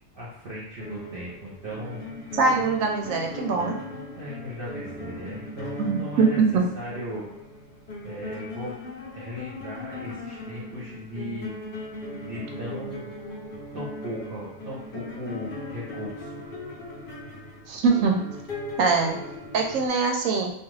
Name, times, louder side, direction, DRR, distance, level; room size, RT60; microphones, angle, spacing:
voice 1, 0.1-2.1 4.2-7.3 8.0-8.8 9.1-11.5 12.2-13.1 13.7-16.4, equal, 50° right, -8 dB, 0.8 m, -37 dB
sound 1, 0.8-19.9, left 1 dB, 55° left, 0.7 m, -38 dB
voice 2, 2.3-3.8 5.8-6.6 17.7-18.3 18.8-19.2 19.5-20.5, right 4 dB, 85° right, 2 dB, 1.0 m, -22 dB
2.4 x 2.4 x 3.1 m, 0.76 s
omnidirectional pair, 1.4 m